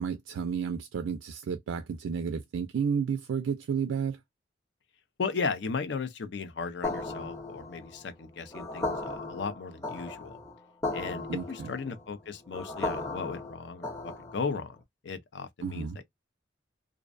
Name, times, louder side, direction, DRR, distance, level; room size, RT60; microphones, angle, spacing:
voice 1, 0.0-4.2 11.3-11.7 15.6-16.0, right 6 dB, 85° right, 0.3 m, -32 dB
voice 2, 5.2-10.4 10.9-14.8 15.0-16.0, left 5 dB, 65° left, 0.4 m, -36 dB
sound 1, 6.8-14.6, left 2 dB, 15° left, 0.6 m, -36 dB
2.5 x 2.1 x 2.4 m
head